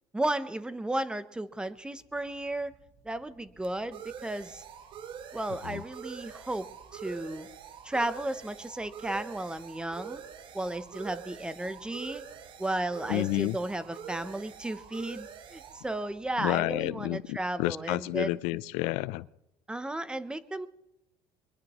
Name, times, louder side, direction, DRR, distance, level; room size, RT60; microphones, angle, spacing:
voice 1, 0.1-2.7 3.0-4.6 5.3-7.5 7.8-10.2 10.5-12.2 12.6-18.4 19.7-20.7, right 1 dB, 10° right, 14 dB, 0.7 m, -34 dB
sound 1, 2.0-17.4, right 8 dB, 50° right, 1.2 m, -46 dB
voice 2, 13.1-13.6 16.4-19.3, left 19 dB, 85° left, 19 dB, 0.5 m, -30 dB
22.5 x 21.0 x 3.0 m, 0.86 s
cardioid pair, 135°, 11 cm